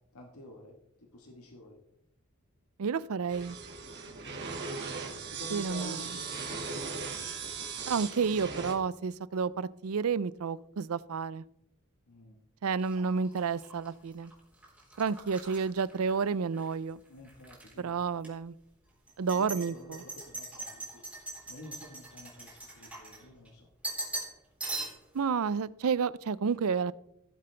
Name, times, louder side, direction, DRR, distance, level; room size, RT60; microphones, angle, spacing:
voice 1, 0.1-1.8 4.0-4.3 5.3-6.8 12.1-12.4 17.1-18.0 19.3-23.7, left 1 dB, 85° left, 3 dB, 1.5 m, -49 dB
voice 2, 2.8-3.6 5.5-6.0 7.9-11.4 12.6-14.3 15.0-17.0 17.8-18.5 19.2-20.0 25.1-26.9, right 5 dB, 80° right, 19 dB, 0.5 m, -30 dB
sound 1, 3.3-8.7, right 5 dB, 50° right, 1.9 m, -38 dB
sound 2, 12.8-16.7 17.1-17.7 18.2-18.3 19.1-23.5 23.8-24.3 24.6-25.2, right 2 dB, 5° right, 3.7 m, -41 dB
16.0 x 7.7 x 3.4 m, 0.77 s
head